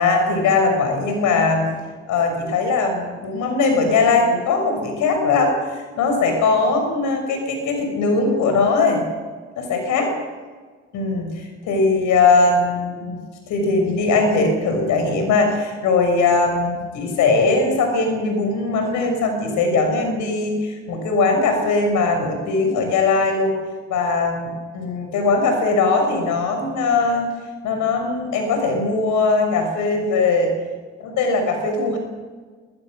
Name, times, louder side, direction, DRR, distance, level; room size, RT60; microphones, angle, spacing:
voice 1, 0.0-1.7 2.1-5.6 6.0-9.0 9.6-10.1 10.9-13.2 13.5-23.5 23.9-27.3 27.6-30.5 31.0-32.0, left 3 dB, 75° left, 4 dB, 6.4 m, -20 dB
21.0 x 21.0 x 6.5 m, 1.4 s
supercardioid pair, 60°, 30 cm